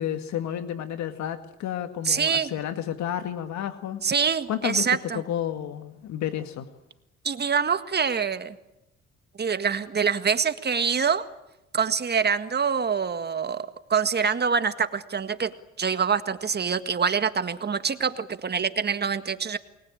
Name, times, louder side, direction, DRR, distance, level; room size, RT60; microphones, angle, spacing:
voice 1, 0.0-4.0 4.5-6.7, left 10 dB, 70° left, 8 dB, 1.9 m, -31 dB
voice 2, 2.0-2.5 4.0-5.2 7.2-8.6 9.4-11.3 11.7-19.6, right 6 dB, 35° right, 10 dB, 1.8 m, -25 dB
29.5 x 20.5 x 8.7 m, 0.91 s
supercardioid pair, 80°, 29 cm